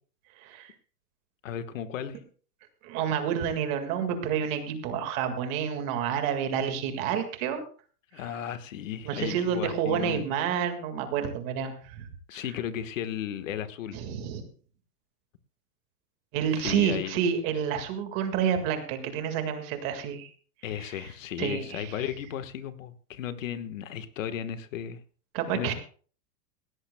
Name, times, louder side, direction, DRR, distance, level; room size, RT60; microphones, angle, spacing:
voice 1, 0.4-0.7 2.8-7.6 9.1-12.1 13.9-14.4 16.3-20.3 21.0-21.1 21.4-21.9 25.3-25.7, right 8 dB, 25° right, 7 dB, 1.8 m, -29 dB
voice 2, 1.4-2.2 8.1-10.3 12.3-14.0 16.6-17.2 20.6-25.0 25.5-25.7, left 10 dB, 50° left, 10 dB, 1.4 m, -35 dB
19.0 x 16.5 x 2.2 m, 0.41 s
supercardioid pair, 180°, 48 cm